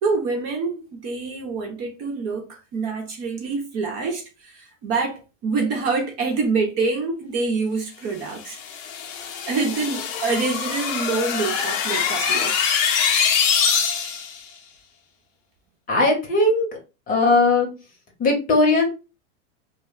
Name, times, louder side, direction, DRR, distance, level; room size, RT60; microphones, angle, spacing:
voice 1, 0.0-8.6 9.5-12.7, right 4 dB, 40° right, 0.9 m, -26 dB
sound 1, 8.4-14.4, left 7 dB, 50° left, 0.7 m, -23 dB
voice 2, 15.9-16.6 17.1-17.7 18.2-18.9, left 2 dB, 20° left, 0.9 m, -18 dB
2.2 x 2.2 x 3.7 m
supercardioid pair, 130°, 37 cm